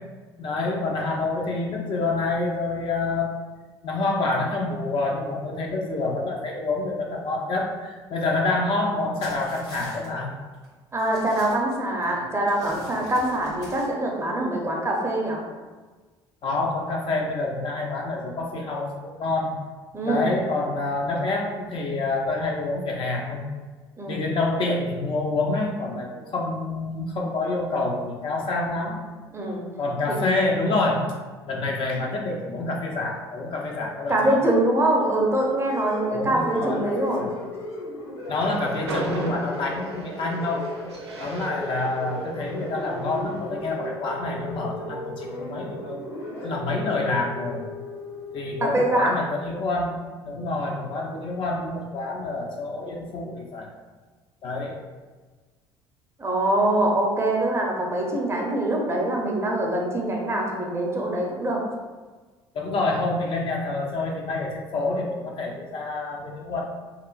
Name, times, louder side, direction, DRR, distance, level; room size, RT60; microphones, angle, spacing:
voice 1, 0.4-3.3 3.8-10.3 16.4-19.5 20.0-23.4 24.1-29.0 29.8-31.1 31.5-34.4 36.1-37.3 38.3-40.7 41.2-46.0 46.4-47.7 48.3-50.0 50.3-53.7 54.4-54.8 62.5-66.6, left 2 dB, 40° left, -1 dB, 0.5 m, -27 dB
baking paper folding, 9.2-10.1 10.5-10.7 11.0-12.1 12.5-13.9, equal, 85° left, 1.5 m, -44 dB
voice 2, 10.9-15.4 19.9-20.3 24.0-24.2 29.3-29.6 30.1-30.4 34.1-37.3 48.6-49.2 56.2-61.6, right 1 dB, 20° right, -1 dB, 0.6 m, -24 dB
sound 1, 35.2-48.9, left 1 dB, 60° left, 0.8 m, -36 dB
Train, 38.2-43.5, right 1 dB, 80° right, 0.4 m, -37 dB
2.9 x 2.4 x 2.3 m, 1.4 s
figure-of-eight pair, 55°, 14 cm